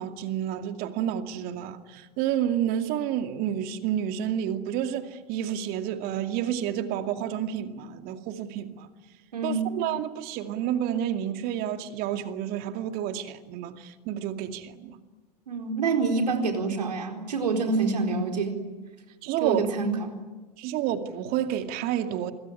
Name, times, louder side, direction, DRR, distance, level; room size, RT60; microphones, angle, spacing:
voice 1, 0.0-8.9 9.4-15.0 19.2-19.7 20.6-22.3, right 10 dB, 45° right, 2.4 m, -30 dB
voice 2, 9.3-9.6 15.5-18.6 19.4-20.1, right 4 dB, 75° right, 4.3 m, -26 dB
26.5 x 23.0 x 9.9 m
figure-of-eight pair, 90°, 21 cm